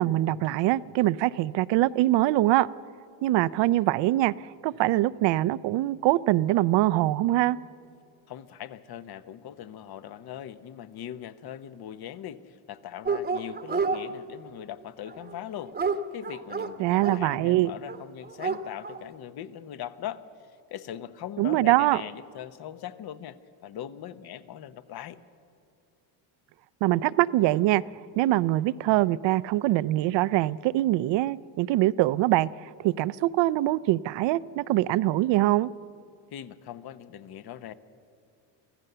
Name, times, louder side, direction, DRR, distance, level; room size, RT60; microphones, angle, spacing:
voice 1, 0.0-2.7 3.2-4.3 4.6-7.6 16.8-17.7 21.4-22.0 26.8-27.8 28.2-32.5 32.8-35.7, right 16 dB, 65° right, 0.6 m, -23 dB
voice 2, 8.3-20.2 20.7-25.2 36.3-37.7, left 10 dB, 50° left, 1.0 m, -40 dB
Dog, 13.1-14.0 15.1-17.2 17.9-18.0 18.2-19.0, right 4 dB, 20° right, 1.0 m, -29 dB
24.5 x 15.5 x 6.8 m
cardioid pair, 115°, 47 cm